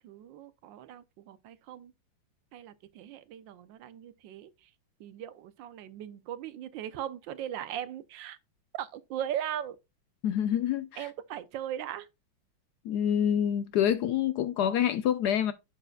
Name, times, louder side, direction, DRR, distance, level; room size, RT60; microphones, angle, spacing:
voice 1, 0.0-1.9 2.5-4.5 5.0-8.4 8.7-9.8 11.0-12.1, right 10 dB, 75° right, 1.3 m, -38 dB
voice 2, 10.2-11.1 12.8-15.5, left 9 dB, 75° left, 0.9 m, -27 dB
7.6 x 6.5 x 2.3 m
omnidirectional pair, 2.2 m